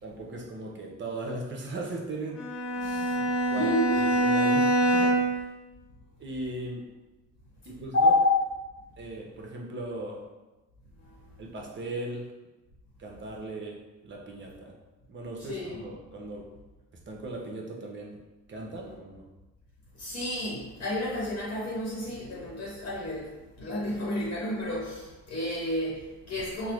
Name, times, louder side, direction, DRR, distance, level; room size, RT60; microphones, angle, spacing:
voice 1, 0.0-2.5 3.5-3.6 4.2-5.5 6.2-6.8 7.7-8.1 9.0-10.2 11.4-12.3 13.0-14.8 15.1-16.4 17.1-18.2 18.5-19.2, right 2 dB, 40° right, -1 dB, 0.7 m, -38 dB
Bowed string instrument, 2.4-5.5, right 2 dB, 5° right, 0.8 m, -25 dB
voice 2, 2.8-3.3 3.5-4.2 7.9-8.5 15.4-15.8 20.0-26.7, left 2 dB, 55° left, -6 dB, 0.9 m, -29 dB
3.5 x 2.0 x 3.0 m, 1.1 s
cardioid pair, 90°, 30 cm